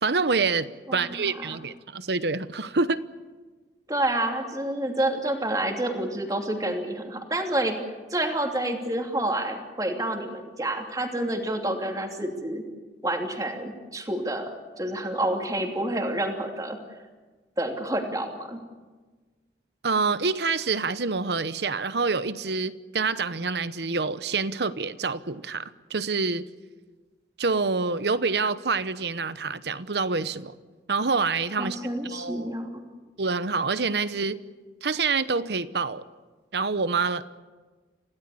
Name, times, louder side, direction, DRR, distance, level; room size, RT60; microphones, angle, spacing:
voice 1, 0.0-3.0 19.8-26.4 27.4-30.5 30.9-31.8 32.1-32.5 33.2-34.4 34.8-36.0 36.5-37.2, right 4 dB, 70° right, 1.0 m, -26 dB
voice 2, 0.9-1.6 3.9-7.8 8.1-12.6 13.0-16.8 17.6-18.6 31.6-32.7, right 1 dB, 20° right, 2.9 m, -28 dB
27.5 x 17.0 x 8.6 m
head